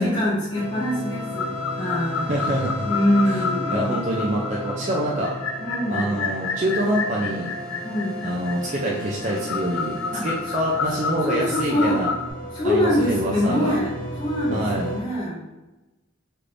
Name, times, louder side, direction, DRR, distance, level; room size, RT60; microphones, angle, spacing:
voice 1, 0.0-2.4 2.9-4.0 5.6-6.3 7.8-8.3 10.1-10.6 10.9-12.1 12.5-15.5, equal, 20° left, -8 dB, 0.6 m, -25 dB
sound 1, 0.5-15.0, equal, 45° left, 0.9 m, -34 dB
sound 2, 1.2-12.3, left 5 dB, 85° left, 0.4 m, -30 dB
voice 2, 2.3-2.9 3.2-5.3 5.9-7.5 8.2-10.0 10.2-12.1 12.6-13.8 14.5-14.9, right 1 dB, 35° right, -4 dB, 0.4 m, -26 dB
3.2 x 3.1 x 2.5 m, 1.1 s
head